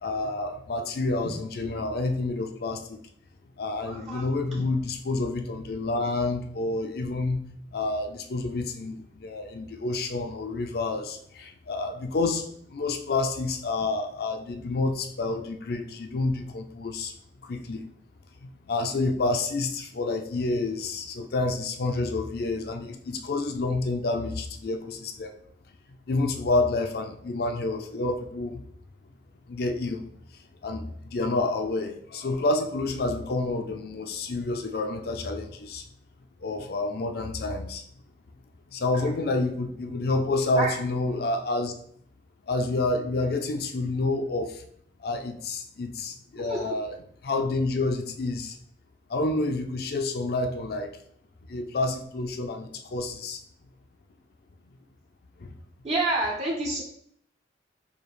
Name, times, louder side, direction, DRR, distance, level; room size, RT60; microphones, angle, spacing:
voice 1, 0.0-3.0 3.6-7.4 7.7-17.1 17.4-17.9 18.7-25.3 26.1-28.6 29.5-30.0 30.6-35.8 36.4-37.8 38.7-41.7 42.5-44.6 45.0-48.6 49.1-51.0 51.5-53.4 55.4-55.5, left 2 dB, 55° left, 6 dB, 0.4 m, -29 dB
voice 2, 3.9-4.2 40.6-40.7 46.4-46.7 55.8-56.8, right 2 dB, 35° right, -4 dB, 0.5 m, -28 dB
4.8 x 2.4 x 3.1 m, 0.66 s
head